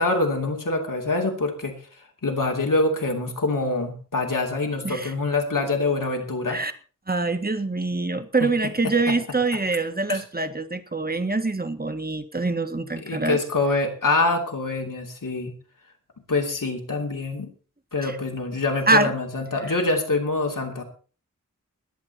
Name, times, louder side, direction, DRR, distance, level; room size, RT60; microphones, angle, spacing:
voice 1, 0.0-1.8 2.2-6.6 8.4-8.5 10.1-10.2 13.0-15.6 16.3-17.5 17.9-20.8, left 3 dB, 90° left, 2 dB, 2.9 m, -25 dB
voice 2, 7.1-13.4 18.0-18.2 18.9-19.1 19.6-19.7, right 3 dB, 30° right, 8 dB, 1.7 m, -24 dB
21.5 x 8.9 x 4.3 m, 0.39 s
wide cardioid pair, 60°, 31 cm